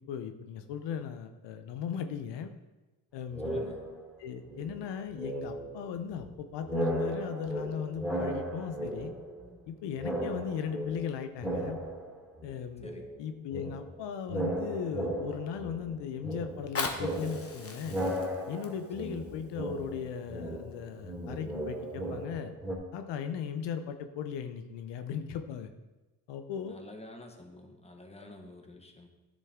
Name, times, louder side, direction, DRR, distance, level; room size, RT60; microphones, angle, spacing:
voice 1, 0.1-2.5 3.1-3.7 4.2-9.1 9.7-11.8 12.4-12.9 13.2-18.0 18.5-22.5 22.9-25.7 26.3-26.8, left 7 dB, 90° left, 8 dB, 0.8 m, -37 dB
sound 1, 3.3-4.2 4.5-6.4 6.6-9.7 10.0-12.5 12.8-22.7, right 1 dB, ahead, 2.9 m, -36 dB
voice 2, 3.4-3.8 12.8-13.0 19.0-19.1 26.7-29.1, left 2 dB, 15° left, 3 dB, 1.4 m, -49 dB
Fire, 16.5-21.5 22.1-22.2, left 3 dB, 35° left, 1.3 m, -41 dB
10.0 x 7.4 x 3.7 m, 1.1 s
cardioid pair, 85°, 41 cm